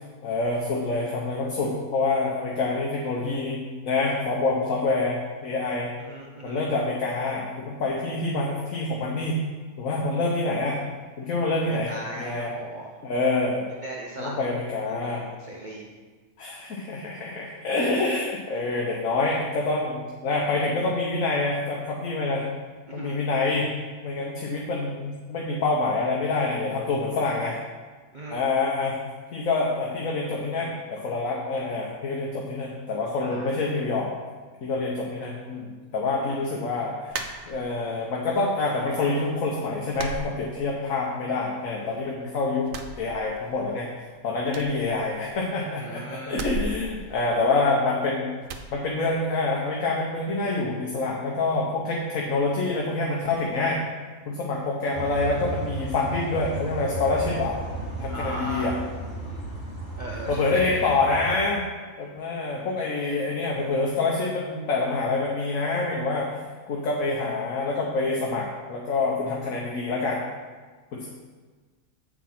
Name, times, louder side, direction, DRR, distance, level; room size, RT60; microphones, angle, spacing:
voice 1, 0.2-5.9 6.4-9.4 9.8-10.8 11.2-11.9 12.2-12.5 13.0-13.7 14.2-15.2 16.4-22.4 22.9-23.7 24.0-27.6 28.3-29.0 29.3-34.1 34.6-42.7 43.0-43.9 44.2-48.3 48.7-53.8 54.3-57.6 58.0-58.7 60.3-61.6 62.0-66.3 66.7-70.2 70.9-71.1, left 3 dB, 70° left, -2 dB, 1.4 m, -26 dB
voice 2, 6.0-6.6 11.6-12.9 13.8-14.4 14.9-15.9 22.9-23.2 28.1-28.4 33.2-33.6 36.0-36.6 45.8-46.5 58.1-58.8 60.0-60.9, right 1 dB, 40° right, -3 dB, 0.8 m, -38 dB
sound 1, 37.1-38.0 38.4-39.1 39.3-39.5 39.9-41.1 41.4-42.2 42.6-43.8 44.0-44.1 44.4-45.6 46.3-47.9 48.4-48.7, right 4 dB, 70° right, 1.1 m, -37 dB
sound 2, 54.9-61.3, right 2 dB, 50° left, 2.4 m, -35 dB
8.1 x 4.9 x 5.8 m, 1.4 s
omnidirectional pair, 1.5 m